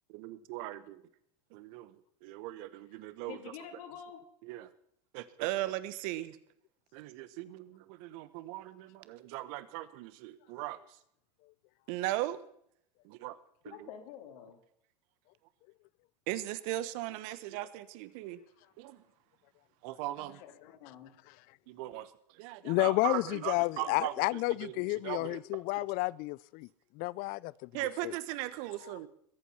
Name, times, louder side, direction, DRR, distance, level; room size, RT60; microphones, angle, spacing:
voice 1, 0.1-1.0 1.5-1.9 2.2-3.4 4.5-4.7 5.1-6.2 6.9-7.6 8.0-10.8 11.9-12.4 13.0-13.4 13.6-13.9 16.3-18.4 18.8-19.0 19.8-20.4 21.7-22.1 22.4-25.8 27.7-29.1, right 15 dB, 55° right, 1.2 m, -38 dB
voice 2, 3.3-4.2 13.6-14.6 20.2-21.1, left 9 dB, 65° left, 3.3 m, -48 dB
voice 3, 22.6-26.7 27.0-27.7 28.0-28.1, left 23 dB, 45° left, 0.5 m, -31 dB
22.0 x 8.4 x 5.8 m
hypercardioid pair, 90°, 21 cm